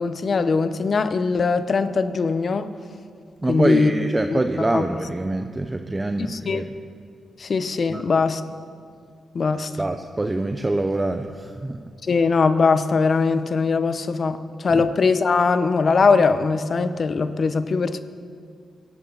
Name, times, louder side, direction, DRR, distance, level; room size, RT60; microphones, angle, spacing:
voice 1, 0.0-2.7 3.5-3.9 4.3-4.4 4.7-4.8 6.2-6.6 7.4-8.4 9.3-9.7 12.1-18.0, left 4 dB, 55° left, 12 dB, 0.9 m, -21 dB
voice 2, 3.4-6.7 7.9-8.0 9.8-11.8 14.7-14.9, right 2 dB, 25° right, 6 dB, 0.9 m, -25 dB
24.0 x 11.0 x 4.1 m, 2.2 s
supercardioid pair, 50°, 0 cm